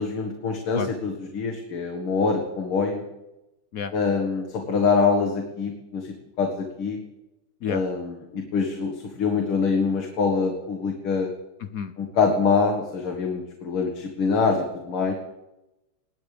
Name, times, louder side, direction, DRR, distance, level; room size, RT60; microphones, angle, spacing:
voice 1, 0.0-3.0 3.9-7.0 7.7-11.3 12.0-15.1, left 5 dB, 85° left, 2 dB, 2.7 m, -25 dB
voice 2, 11.6-11.9 15.1-15.2, left 6 dB, 70° left, 11 dB, 0.8 m, -30 dB
20.5 x 19.0 x 3.4 m, 0.95 s
omnidirectional pair, 2.3 m